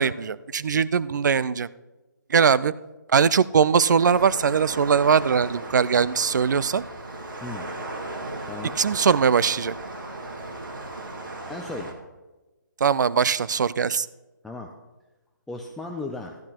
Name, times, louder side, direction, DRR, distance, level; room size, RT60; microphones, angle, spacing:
voice 1, 0.0-1.7 2.3-2.7 3.1-6.8 8.8-9.7 12.8-14.1, right 6 dB, 65° right, 18 dB, 0.4 m, -21 dB
sound 1, 4.0-11.9, right 2 dB, 85° right, 2.1 m, -36 dB
voice 2, 8.5-8.8 11.5-12.0 14.4-14.7 15.5-16.4, left 2 dB, ahead, 0 dB, 0.4 m, -36 dB
13.0 x 12.0 x 3.0 m, 1.1 s
figure-of-eight pair, 150°, 11 cm